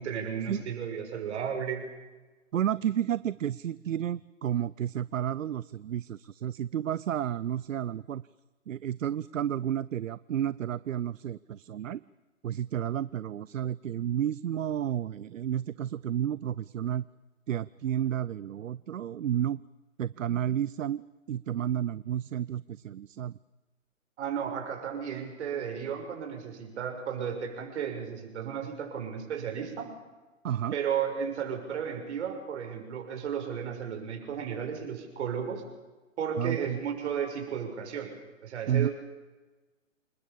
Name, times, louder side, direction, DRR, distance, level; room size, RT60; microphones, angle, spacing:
voice 1, 0.0-1.8 24.2-29.9 30.7-35.6 36.2-38.1 38.4-38.9, right 7 dB, 60° right, 4 dB, 6.5 m, -34 dB
voice 2, 2.5-8.2 8.7-12.0 12.4-17.0 17.5-19.6 20.0-21.0 21.3-23.4 30.4-30.8 36.4-36.8 38.7-38.9, right 10 dB, 75° right, 19 dB, 0.7 m, -31 dB
28.5 x 20.5 x 7.0 m, 1.2 s
hypercardioid pair, 125°, 39 cm